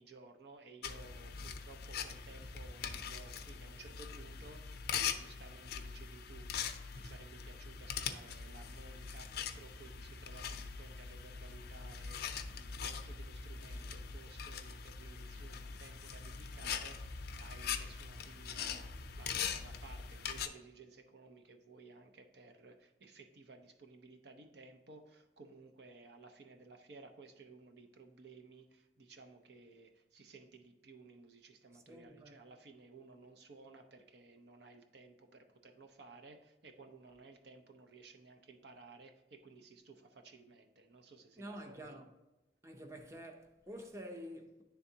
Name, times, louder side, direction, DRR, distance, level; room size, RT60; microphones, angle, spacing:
voice 1, 0.0-42.0, right 3 dB, 65° right, 0.6 m, -57 dB
sound 1, 0.8-20.5, left 6 dB, 60° left, 0.5 m, -42 dB
voice 2, 31.7-32.3 41.4-42.1 42.6-44.6, equal, 15° right, 0.6 m, -48 dB
10.0 x 3.5 x 2.8 m
head